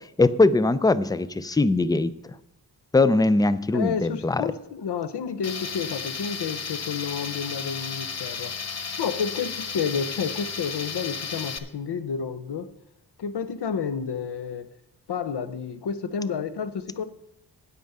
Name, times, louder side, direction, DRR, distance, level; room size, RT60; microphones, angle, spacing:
voice 1, 0.2-2.1 2.9-4.4, left 2 dB, 10° left, 15 dB, 0.3 m, -21 dB
voice 2, 3.7-8.5 9.0-12.7 13.2-14.7 15.1-17.0, left 6 dB, 75° left, 12 dB, 0.7 m, -30 dB
Tools, 5.4-11.6, left 6 dB, 40° left, 0.7 m, -33 dB
9.3 x 8.4 x 5.4 m, 0.83 s
wide cardioid pair, 120°, 41 cm